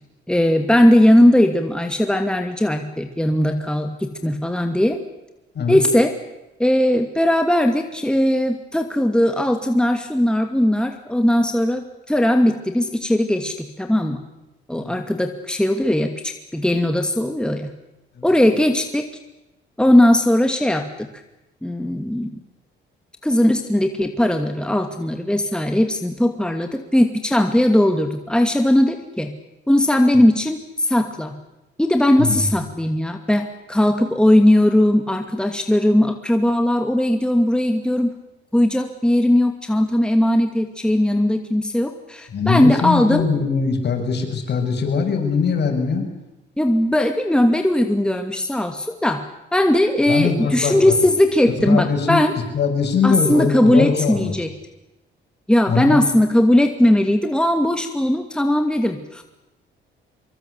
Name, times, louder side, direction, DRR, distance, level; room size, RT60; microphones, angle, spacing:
voice 1, 0.3-5.0 5.7-6.1 6.6-14.2 14.7-17.7 18.2-19.1 19.8-21.1 21.6-22.3 23.2-29.3 29.7-31.3 31.8-38.1 38.5-43.3 46.6-49.2 49.5-52.3 53.0-54.5 55.5-59.2, left 1 dB, 5° left, 5 dB, 2.5 m, -18 dB
voice 2, 42.3-46.0 50.1-50.9 51.7-52.2 52.5-54.3 55.7-56.0, left 5 dB, 55° left, 4 dB, 7.2 m, -21 dB
24.5 x 23.5 x 8.4 m, 0.97 s
cardioid pair, 90°, 20 cm